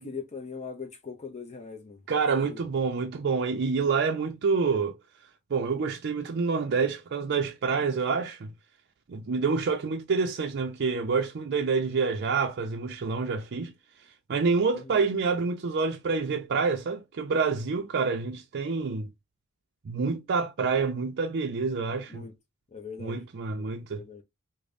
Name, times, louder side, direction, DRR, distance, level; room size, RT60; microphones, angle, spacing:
voice 1, 0.0-2.0 2.3-2.6 14.7-15.0 22.1-22.3 22.7-23.2 23.6-23.7 23.9-24.2, left 5 dB, 30° left, 0.5 m, -40 dB
voice 2, 2.1-4.9 5.5-8.5 9.1-13.7 14.3-19.1 19.9-22.3 23.0-24.0, right 4 dB, 50° right, 0.4 m, -27 dB
5.0 x 2.1 x 2.5 m
head